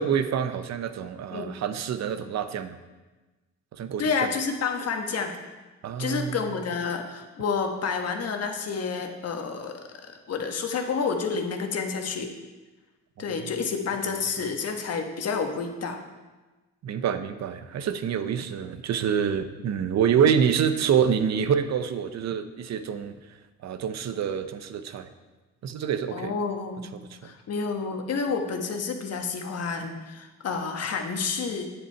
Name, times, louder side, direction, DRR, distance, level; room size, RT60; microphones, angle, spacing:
voice 1, 0.0-2.7 3.8-4.3 5.8-6.4 13.2-13.5 14.4-14.5 16.8-23.1 23.6-25.1 25.6-26.3 27.2-27.3, right 7 dB, 60° right, 11 dB, 0.8 m, -26 dB
voice 2, 4.0-5.3 6.0-9.8 10.3-12.3 13.2-16.0 26.1-26.8 27.2-31.7, left 5 dB, 55° left, 4 dB, 1.3 m, -29 dB
9.4 x 7.5 x 4.5 m, 1.2 s
cardioid pair, 90°, 30 cm